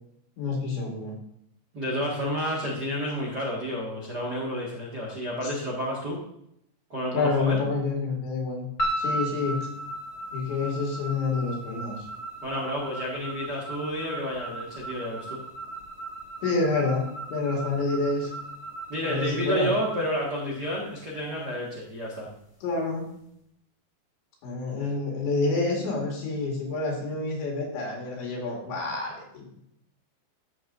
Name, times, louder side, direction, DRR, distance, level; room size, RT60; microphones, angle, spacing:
voice 1, 0.4-1.1 5.4-5.5 7.1-8.7 9.0-9.6 10.3-12.1 16.4-17.0 17.3-18.3 19.1-19.7 22.6-23.1 24.4-29.5, left 3 dB, 75° left, -1 dB, 4.6 m, -28 dB
voice 2, 1.7-6.2 6.9-7.6 12.4-15.4 18.9-22.3, equal, 80° right, -4 dB, 0.9 m, -30 dB
sound 1, 8.8-21.1, right 1 dB, 30° left, 2.1 m, -36 dB
14.0 x 7.1 x 2.6 m, 0.75 s
omnidirectional pair, 5.2 m